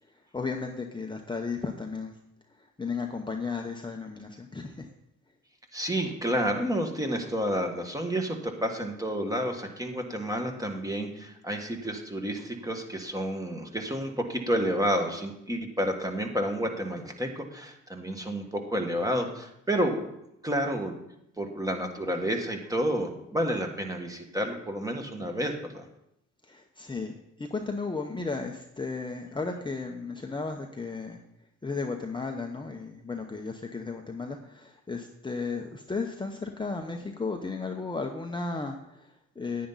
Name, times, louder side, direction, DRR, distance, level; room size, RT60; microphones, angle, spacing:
voice 1, 0.1-2.2 2.5-4.9 26.4-31.2 31.6-39.7, left 4 dB, 15° left, 2 dB, 0.9 m, -34 dB
voice 2, 5.7-20.1 20.4-20.9 21.4-25.9, equal, 10° right, 3 dB, 1.6 m, -30 dB
10.0 x 9.5 x 4.1 m, 0.80 s
cardioid pair, 90°, 30 cm